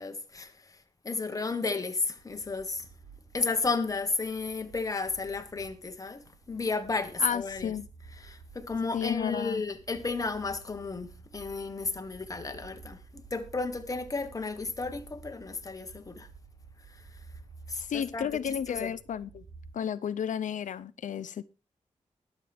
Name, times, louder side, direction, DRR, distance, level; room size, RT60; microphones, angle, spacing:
voice 1, 0.0-2.9 3.3-7.7 8.2-16.3 16.9-17.2 17.7-18.9, left 4 dB, 25° left, 1.3 m, -33 dB
sound 1, 2.2-19.7, right 4 dB, 50° right, 1.4 m, -52 dB
voice 2, 7.2-7.9 8.9-9.6 17.7-19.4 19.7-21.4, left 8 dB, 90° left, 0.5 m, -32 dB
20.5 x 7.3 x 3.4 m
wide cardioid pair, 160°, 13 cm